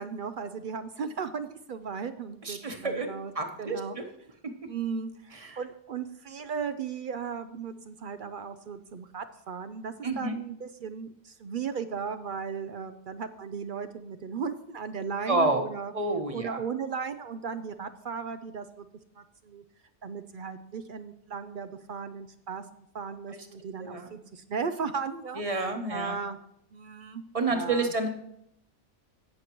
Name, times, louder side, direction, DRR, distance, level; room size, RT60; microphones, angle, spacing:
voice 1, 0.0-3.3 3.6-4.0 4.7-15.9 16.3-18.8 19.2-19.6 20.0-26.4 26.7-27.2 27.5-27.9, right 6 dB, 60° right, 11 dB, 0.6 m, -36 dB
voice 2, 2.4-4.1 5.4-5.6 10.0-10.3 15.3-15.6 15.9-16.6 23.8-24.1 25.4-26.1 27.3-28.1, right 2 dB, 30° right, 5 dB, 1.1 m, -29 dB
17.5 x 6.5 x 3.0 m, 0.77 s
omnidirectional pair, 1.2 m